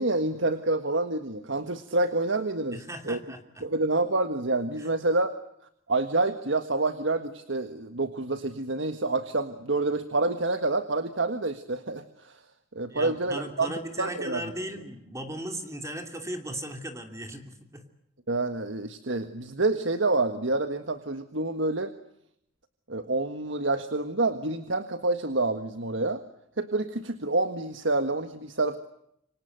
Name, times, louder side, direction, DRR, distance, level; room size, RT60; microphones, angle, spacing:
voice 1, 0.0-3.2 3.6-5.3 5.9-12.3 12.7-13.7 14.0-14.4 18.3-21.9 22.9-26.2 26.6-28.8, right 2 dB, 70° right, 9 dB, 1.6 m, -28 dB
voice 2, 2.7-3.6 4.8-4.9 12.9-17.8, right 1 dB, 15° right, 5 dB, 2.9 m, -37 dB
28.0 x 25.5 x 8.0 m, 0.75 s
head